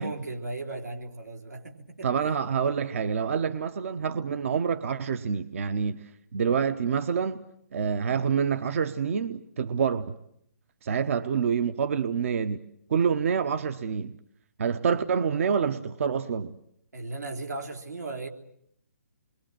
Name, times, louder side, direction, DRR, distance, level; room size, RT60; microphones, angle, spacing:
voice 1, 0.0-2.4 16.9-18.3, right 2 dB, 85° right, 3.7 m, -37 dB
voice 2, 2.0-7.4 7.7-10.2 10.8-12.6 12.9-14.2 14.6-16.6, right 6 dB, 55° right, 1.0 m, -27 dB
28.5 x 22.5 x 7.5 m
figure-of-eight pair, 140°, 9 cm